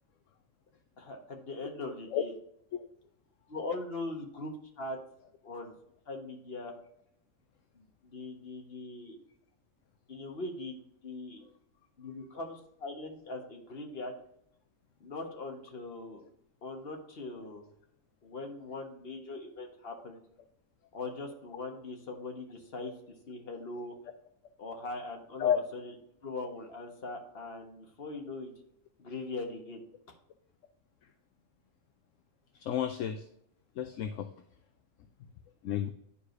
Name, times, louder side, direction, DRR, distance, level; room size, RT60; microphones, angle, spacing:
voice 1, 1.0-2.3 3.5-5.0 5.4-5.7 6.1-6.7 7.7-9.2 10.1-10.8 11.0-11.4 12.0-14.1 15.0-16.2 16.6-17.6 18.2-20.2 20.9-22.9 23.3-23.9 24.6-25.9 26.2-28.5 29.0-29.8 30.1-30.2, left 2 dB, 45° left, 2 dB, 1.5 m, -41 dB
voice 2, 32.5-33.3 33.8-34.3 35.6-35.9, left 9 dB, 70° left, 8 dB, 0.9 m, -31 dB
11.0 x 4.8 x 2.6 m, 0.73 s
omnidirectional pair, 1.5 m